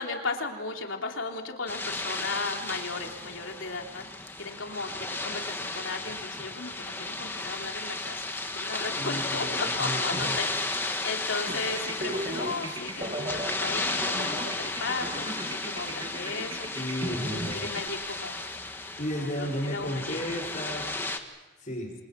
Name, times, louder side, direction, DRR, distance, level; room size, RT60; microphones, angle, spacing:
voice 1, 0.0-8.2 8.5-16.7 17.3-18.4 19.1-20.3, left 3 dB, 80° left, 2 dB, 3.3 m, -36 dB
sound 1, 1.7-21.2, left 2 dB, 10° left, 1.6 m, -34 dB
voice 2, 9.0-10.4 16.7-17.7 19.0-21.9, equal, 40° left, -7 dB, 5.1 m, -34 dB
sound 2, 11.5-17.9, right 1 dB, 25° right, 2.4 m, -37 dB
29.0 x 27.0 x 5.9 m, 1.2 s
head